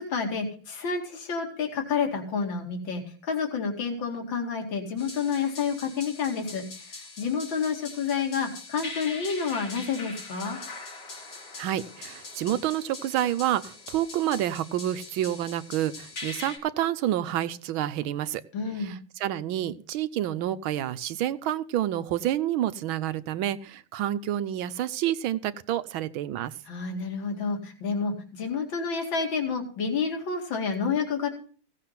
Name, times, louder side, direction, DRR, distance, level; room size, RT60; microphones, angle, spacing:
voice 1, 0.0-10.6 18.5-18.9 26.7-31.3, left 5 dB, 70° left, 3 dB, 3.1 m, -29 dB
sound 1, 5.0-16.6, left 3 dB, 90° left, 4.4 m, -42 dB
voice 2, 11.6-18.4 18.8-26.5, right 12 dB, 90° right, 15 dB, 1.6 m, -29 dB
16.5 x 7.5 x 5.8 m, 0.41 s
omnidirectional pair, 2.2 m